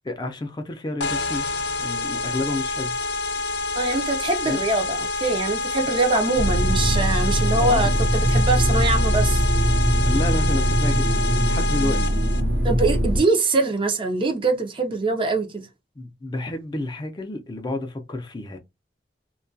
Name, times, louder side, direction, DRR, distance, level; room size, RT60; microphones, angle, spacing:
voice 1, 0.1-1.5 1.8-3.0 4.5-4.6 7.5-8.0 10.0-12.0 16.0-18.6, left 2 dB, 25° left, 0.4 m, -30 dB
sound 1, 1.0-12.4, left 3 dB, 80° left, 0.5 m, -28 dB
voice 2, 3.8-9.4 12.6-15.7, right 3 dB, 30° right, 0.5 m, -23 dB
sound 2, 6.4-13.2, equal, 75° right, 0.7 m, -21 dB
2.2 x 2.2 x 2.5 m
head